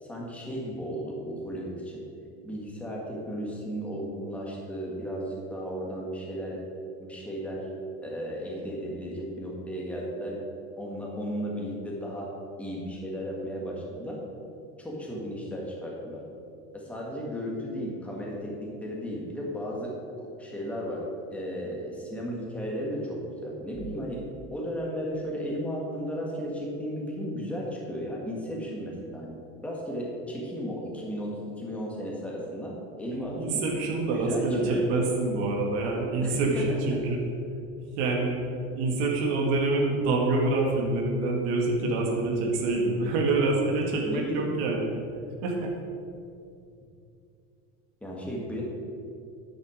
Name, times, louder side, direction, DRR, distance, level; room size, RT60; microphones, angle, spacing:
voice 1, 0.0-2.1 2.4-6.6 7.0-7.7 8.0-10.4 10.8-14.2 14.8-16.2 16.7-33.7 34.1-34.9 36.2-36.9 44.0-44.5 48.0-48.6, equal, 5° left, -3 dB, 1.6 m, -35 dB
voice 2, 33.4-37.2 38.0-38.4 38.7-44.9 45.4-45.7, right 2 dB, 85° right, 0 dB, 2.0 m, -26 dB
9.8 x 9.3 x 5.0 m, 2.5 s
cardioid pair, 175°, 31 cm